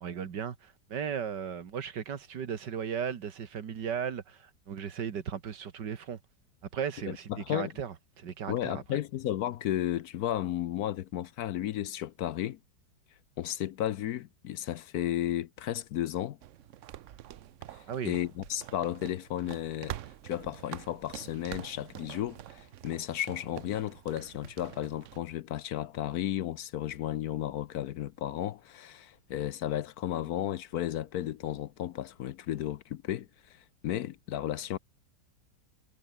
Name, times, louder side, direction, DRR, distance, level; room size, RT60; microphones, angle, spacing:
voice 1, 0.0-6.2 6.7-9.0 17.9-18.2, right 7 dB, 80° right, 2.2 m, -36 dB
voice 2, 7.1-7.7 8.5-12.6 13.4-16.4 17.7-19.9 20.2-34.8, left 12 dB, 70° left, 1.1 m, -34 dB
sound 1, 16.4-25.2, right 12 dB, 60° right, 0.8 m, -46 dB
omnidirectional pair, 1.9 m